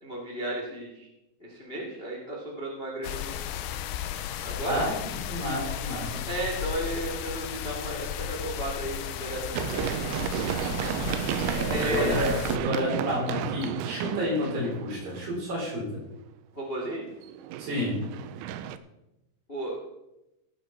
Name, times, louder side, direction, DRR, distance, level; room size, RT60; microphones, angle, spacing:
voice 1, 0.0-1.1 1.4-3.3 4.4-4.8 6.3-9.9 11.7-12.3 16.5-17.1 19.5-19.8, right 1 dB, 35° left, -2 dB, 0.8 m, -33 dB
sound 1, 3.0-12.6, left 11 dB, 85° left, 3.0 m, -34 dB
voice 2, 4.7-6.2 11.5-12.3 12.6-15.8 17.6-18.0, equal, 50° right, -4 dB, 6.1 m, -30 dB
Run, 9.5-15.4 17.2-18.8, right 10 dB, 85° right, 2.3 m, -32 dB
16.5 x 9.1 x 4.5 m, 0.92 s
omnidirectional pair, 5.1 m